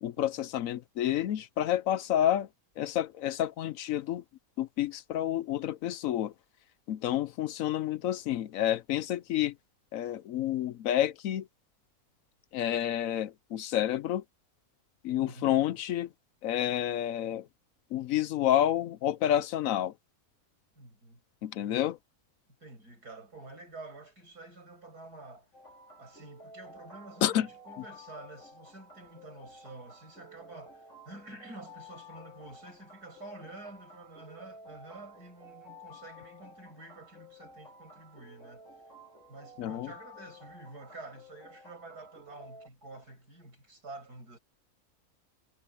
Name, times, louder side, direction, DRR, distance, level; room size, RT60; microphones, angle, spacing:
voice 1, 0.0-2.5 2.8-4.2 4.6-6.3 6.9-9.6 9.9-11.5 12.5-14.2 15.0-16.1 16.4-17.5 17.9-19.9 21.4-22.0 27.2-27.5 39.6-39.9, left 11 dB, 70° left, 0.9 m, -29 dB
voice 2, 15.2-15.6 20.7-21.2 22.6-25.5 26.0-38.6 39.3-44.4, right 2 dB, 85° right, 8.7 m, -49 dB
sound 1, 25.5-42.7, left 1 dB, 50° left, 5.6 m, -52 dB
omnidirectional pair, 1.6 m